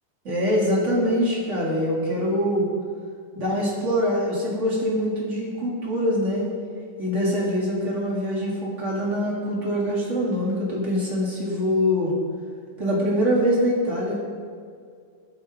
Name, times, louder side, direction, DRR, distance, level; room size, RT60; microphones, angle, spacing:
voice 1, 0.2-2.7 3.4-6.5 7.0-12.1 12.8-14.2, equal, 20° right, -5 dB, 2.5 m, -24 dB
21.5 x 8.7 x 3.9 m, 2.2 s
omnidirectional pair, 5.4 m